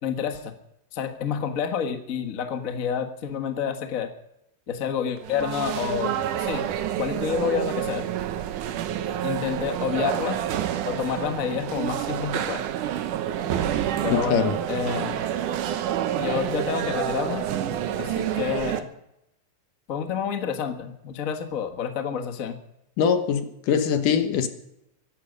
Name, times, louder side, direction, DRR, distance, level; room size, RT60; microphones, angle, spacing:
voice 1, 0.0-0.5 0.9-4.1 4.7-6.7 7.0-8.0 9.2-10.4 10.8-12.6 14.0-15.3 16.2-17.4 18.0-18.9 19.9-22.6, left 7 dB, 50° left, 6 dB, 1.0 m, -29 dB
sound 1, 5.2-18.8, right 10 dB, 75° right, 2.5 m, -28 dB
voice 2, 14.1-14.6 23.0-24.5, left 7 dB, 80° left, 8 dB, 2.9 m, -22 dB
24.0 x 11.5 x 5.3 m, 0.85 s
omnidirectional pair, 3.8 m